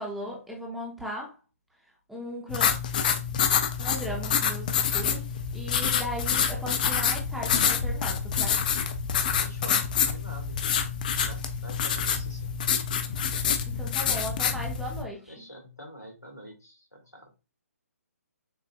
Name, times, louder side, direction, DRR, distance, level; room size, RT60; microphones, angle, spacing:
voice 1, 0.0-1.4 2.1-2.7 3.8-8.7 13.7-15.3, equal, ahead, 0.7 m, -37 dB
sound 1, 2.5-15.0, left 7 dB, 30° left, 0.4 m, -27 dB
voice 2, 9.4-10.6 11.1-12.6 15.3-17.3, equal, 90° left, 1.6 m, -46 dB
6.2 x 2.6 x 2.2 m
figure-of-eight pair, 140°, 8 cm